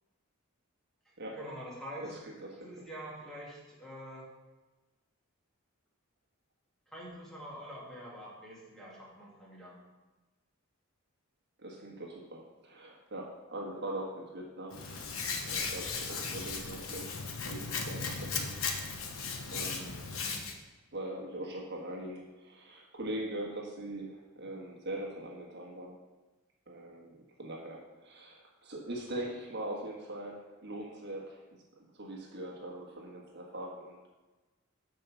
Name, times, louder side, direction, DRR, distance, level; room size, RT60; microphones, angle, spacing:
voice 1, 1.0-2.2 2.6-4.3 6.9-9.8 19.4-19.7 24.4-24.5, equal, ahead, -6 dB, 2.4 m, -46 dB
voice 2, 2.0-2.3 2.6-2.7 11.6-14.8 15.5-18.6 19.5-20.0 20.9-25.9 26.7-31.4 31.8-34.0, right 1 dB, 50° right, -1 dB, 1.5 m, -41 dB
Hands, 14.7-20.5, left 5 dB, 70° left, 1.1 m, -36 dB
7.7 x 5.8 x 6.9 m, 1.2 s
head